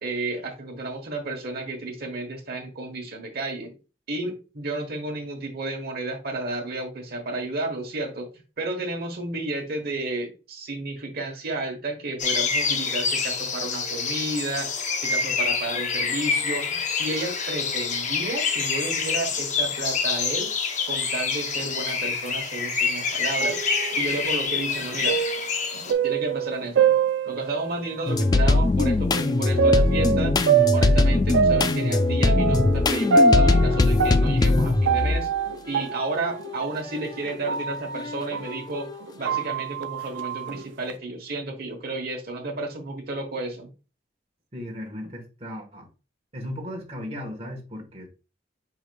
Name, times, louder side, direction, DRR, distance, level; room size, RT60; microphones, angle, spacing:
voice 1, 0.0-3.7 4.1-8.3 8.6-20.5 20.9-23.6 24.0-25.2 26.0-26.9 27.2-30.4 30.7-35.3 35.7-38.9 39.2-43.7, right 2 dB, 55° right, 1.2 m, -32 dB
sound 1, 12.2-25.9, left 5 dB, 40° left, 0.7 m, -27 dB
sound 2, 23.4-28.0 28.5-28.6 29.6-38.6 39.0-40.9, right 5 dB, 75° right, 0.4 m, -25 dB
sound 3, 28.1-35.4 36.0-36.9 37.5-37.6 38.0-39.0, left 2 dB, 20° left, 0.3 m, -21 dB
voice 2, 44.5-45.8 46.3-48.1, left 1 dB, 35° right, 1.2 m, -36 dB
4.9 x 4.8 x 2.2 m
head